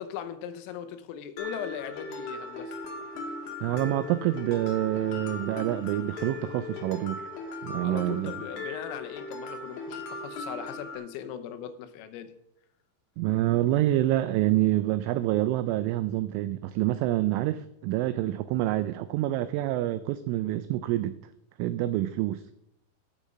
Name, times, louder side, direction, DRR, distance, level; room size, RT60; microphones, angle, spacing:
voice 1, 0.0-2.7 7.8-12.3, left 9 dB, 80° left, 9 dB, 3.5 m, -39 dB
Mallet percussion, 1.4-11.0, left 2 dB, 65° left, 2.0 m, -38 dB
voice 2, 3.6-7.2 7.6-8.4 13.2-21.1 21.6-22.4, right 14 dB, 85° right, 12 dB, 2.8 m, -27 dB
14.5 x 7.2 x 5.2 m, 0.79 s
omnidirectional pair, 6.0 m